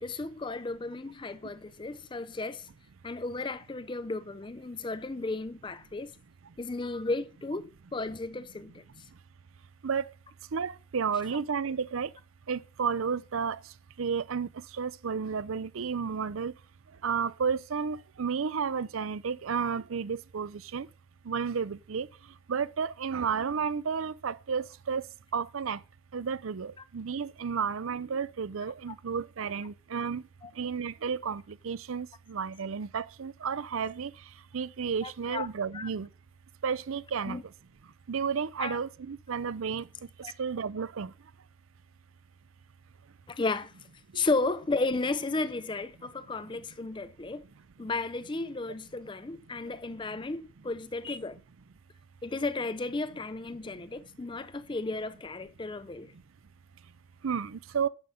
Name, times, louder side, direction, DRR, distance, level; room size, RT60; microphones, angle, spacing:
voice 1, 0.0-2.7 3.0-6.2 6.6-8.8 30.4-30.5 35.0-35.5 35.7-35.9 37.3-37.4 38.6-38.8 40.2-40.3 43.3-43.7 44.1-47.5 47.8-51.4 52.2-56.1, left 3 dB, 20° left, 0.4 m, -34 dB
voice 2, 10.5-12.1 12.5-13.6 14.0-14.5 14.8-16.5 17.0-20.9 21.3-22.1 22.5-25.0 25.3-25.8 26.1-30.2 30.6-34.1 34.5-36.1 36.6-37.4 38.1-39.9 40.4-41.1 44.1-44.2 57.2-57.9, right 6 dB, 70° right, 0.5 m, -32 dB
10.0 x 6.8 x 5.6 m
head